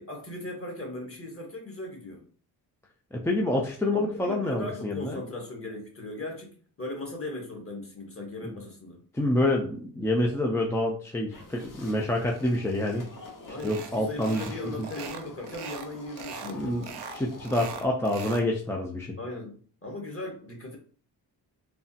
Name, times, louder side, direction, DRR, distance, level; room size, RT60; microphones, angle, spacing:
voice 1, 0.0-2.2 3.9-6.5 6.8-9.0 13.5-16.9 19.2-19.6 19.8-20.8, left 2 dB, 30° left, 1 dB, 1.3 m, -38 dB
voice 2, 3.1-5.2 9.1-13.1 13.6-14.9 16.5-16.8 17.1-19.2, left 1 dB, 5° left, -1 dB, 0.4 m, -27 dB
sound 1, 11.3-17.9, left 2 dB, 50° left, 1.0 m, -46 dB
sound 2, 13.6-13.9 14.2-14.6 14.8-15.9 16.2-16.5 16.8-18.5, right 6 dB, 70° right, 0.6 m, -40 dB
3.3 x 2.0 x 2.7 m, 0.43 s
cardioid pair, 60°, 42 cm